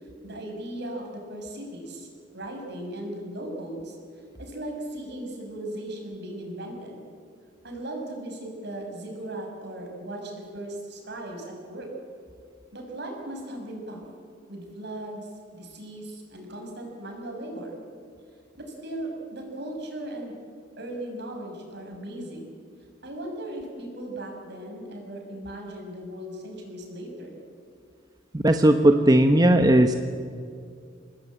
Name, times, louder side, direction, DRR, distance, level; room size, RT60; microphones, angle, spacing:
voice 1, 0.2-2.1 2.3-4.0 4.4-7.0 7.6-11.9 12.7-14.0 14.5-17.8 18.6-20.3 20.8-22.5 23.0-27.4, right 1 dB, 60° right, 1 dB, 6.7 m, -37 dB
voice 2, 28.3-29.9, right 1 dB, 20° right, 6 dB, 1.0 m, -17 dB
27.5 x 19.5 x 8.8 m, 2.3 s
head